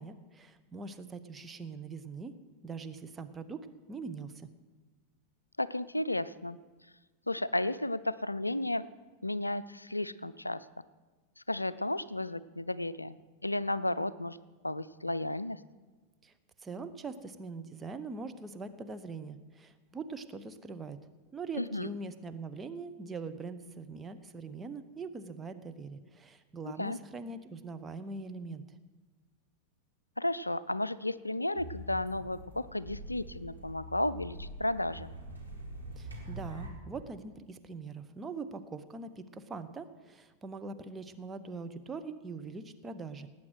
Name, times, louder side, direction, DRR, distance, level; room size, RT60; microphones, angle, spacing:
voice 1, 0.0-2.3 2.6-4.5 16.2-16.3 16.6-21.0 21.3-28.8 36.0-43.3, right 4 dB, 15° right, 8 dB, 0.9 m, -42 dB
voice 2, 5.6-6.6 7.3-8.9 9.2-10.7 11.5-13.2 13.4-14.4 14.6-15.6 21.6-21.9 26.8-27.0 30.2-35.1, left 1 dB, 85° left, 16 dB, 0.4 m, -33 dB
sound 1, 31.5-36.7, right 1 dB, 85° right, 2.6 m, -44 dB
18.5 x 8.8 x 6.3 m, 1.3 s
figure-of-eight pair, 90°, 0 cm